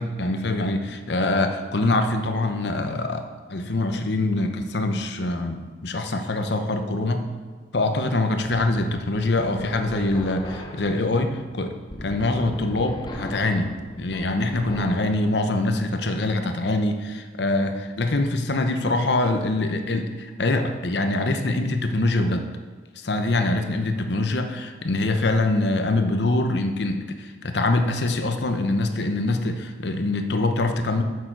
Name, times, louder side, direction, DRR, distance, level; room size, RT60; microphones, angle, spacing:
voice 1, 0.0-7.3 7.7-11.7 12.0-22.4 23.0-31.0, left 2 dB, 65° left, 6 dB, 0.8 m, -24 dB
sound 1, 8.4-15.2, left 1 dB, 25° left, 0.7 m, -39 dB
8.9 x 6.7 x 4.6 m, 1.4 s
head